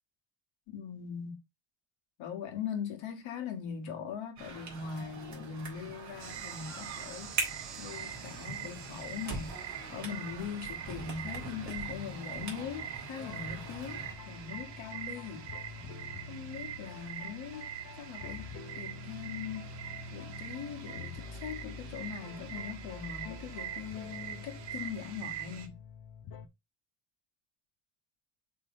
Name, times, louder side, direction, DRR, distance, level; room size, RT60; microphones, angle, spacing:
voice 1, 0.7-1.4 2.2-9.6 9.9-15.5 16.3-17.7 18.0-18.5 18.8-19.7 20.1-25.8, left 7 dB, 70° left, 1.8 m, -41 dB
sound 1, 4.4-14.1, right 3 dB, 35° right, 2.2 m, -42 dB
sound 2, 6.2-25.7, right 10 dB, 60° right, 1.6 m, -44 dB
sound 3, 13.2-26.5, left 5 dB, 45° left, 0.8 m, -47 dB
5.8 x 3.5 x 4.7 m
cardioid pair, 180°, 48 cm